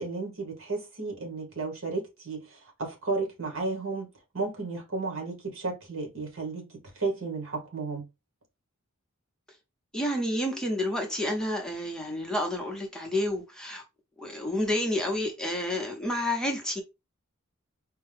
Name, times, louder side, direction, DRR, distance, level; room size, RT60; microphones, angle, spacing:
voice 1, 0.0-4.1 4.3-6.7 6.9-8.1, right 3 dB, 80° right, 1.6 m, -33 dB
voice 2, 9.9-13.8 14.2-16.8, left 1 dB, 5° left, 0.8 m, -29 dB
4.5 x 2.3 x 3.4 m
head